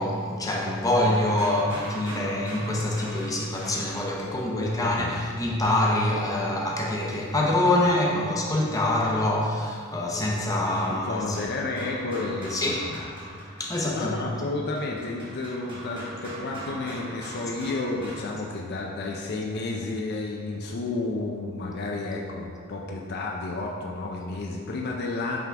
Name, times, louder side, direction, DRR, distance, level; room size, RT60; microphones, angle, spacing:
voice 1, 0.0-11.4 12.5-12.9 13.6-14.2, left 1 dB, 15° left, -3 dB, 0.7 m, -25 dB
sound 1, 1.2-5.5 8.0-8.1 9.8-18.2, right 1 dB, 25° right, 1.5 m, -41 dB
voice 2, 4.5-5.2 10.9-13.1 13.5-13.6 13.9-25.4, left 2 dB, 50° left, -1 dB, 0.5 m, -31 dB
5.7 x 3.7 x 4.6 m, 2.1 s
head